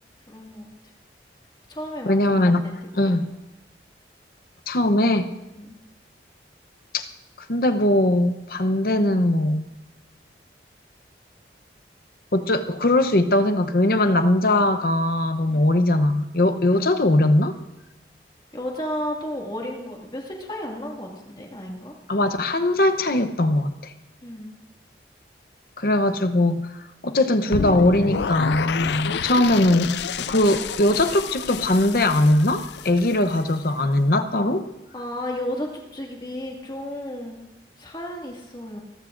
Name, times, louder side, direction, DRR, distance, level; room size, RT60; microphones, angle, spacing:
voice 1, 0.3-0.7 1.7-2.7 3.0-3.2 5.6-5.8 15.5-15.7 18.5-21.9 24.2-24.6 28.9-29.3 34.9-37.5 37.8-38.8, left 1 dB, 25° left, 0 dB, 2.1 m, -33 dB
voice 2, 2.0-2.6 2.9-3.2 4.7-5.3 6.9-7.1 7.5-9.6 12.3-17.6 22.1-23.9 25.8-26.7 27.0-29.9 30.2-34.6, left 1 dB, 55° left, 8 dB, 0.8 m, -20 dB
sound 1, 27.5-33.6, left 6 dB, 75° left, 0.4 m, -29 dB
29.0 x 14.0 x 2.6 m, 0.97 s
head